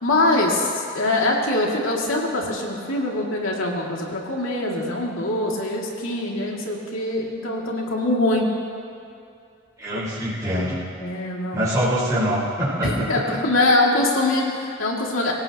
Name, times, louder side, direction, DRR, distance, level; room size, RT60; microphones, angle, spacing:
voice 1, 0.0-8.4 9.9-10.0 11.0-11.7 12.8-15.3, left 2 dB, 90° left, -2 dB, 2.7 m, -23 dB
voice 2, 9.8-10.8 11.5-13.4, equal, 20° right, -11 dB, 4.8 m, -24 dB
25.0 x 17.5 x 3.1 m, 2.5 s
head